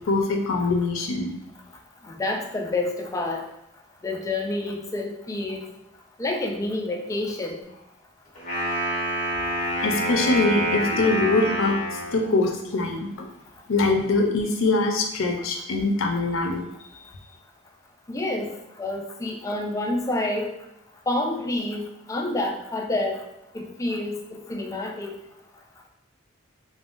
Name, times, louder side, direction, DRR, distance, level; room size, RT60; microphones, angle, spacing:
voice 1, 0.1-1.3 9.8-13.3 13.7-16.6, left 3 dB, 75° left, 3 dB, 0.5 m, -23 dB
voice 2, 2.0-3.4 4.0-5.7 6.2-7.6 18.1-18.5 18.8-20.5 21.1-23.2 23.5-25.1, left 2 dB, 15° left, 1 dB, 0.3 m, -28 dB
Wind instrument woodwind instrument, 8.3-12.3, equal, 40° left, 0.9 m, -27 dB
3.3 x 2.1 x 2.5 m, 0.88 s
head